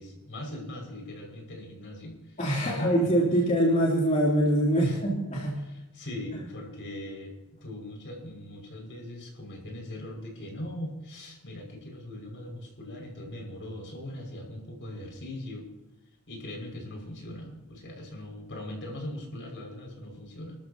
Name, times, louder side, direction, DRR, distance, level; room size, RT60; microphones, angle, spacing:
voice 1, 0.0-3.1 4.8-5.0 5.6-7.3 7.6-15.7 16.3-20.6, left 1 dB, 55° left, 0 dB, 5.7 m, -40 dB
voice 2, 2.4-5.6, right 1 dB, 35° left, -5 dB, 3.0 m, -24 dB
30.0 x 13.5 x 2.9 m, 1.0 s
head